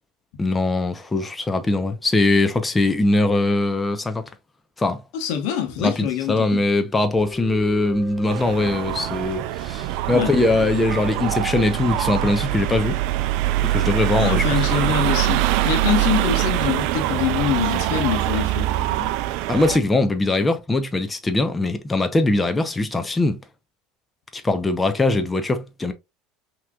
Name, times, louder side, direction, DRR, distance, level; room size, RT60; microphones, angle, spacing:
voice 1, 0.4-4.3 4.8-5.0 5.8-13.0 13.6-14.6 19.5-23.4 24.3-25.9, left 2 dB, 15° left, 0.7 m, -21 dB
voice 2, 5.1-6.6 10.1-10.3 14.2-19.1, left 9 dB, 70° left, 1.1 m, -25 dB
sound 1, 7.1-12.6, equal, ahead, 1.0 m, -40 dB
sound 2, 8.3-19.8, right 15 dB, 65° right, 0.4 m, -23 dB
5.8 x 3.0 x 2.3 m
hypercardioid pair, 85°, 0 cm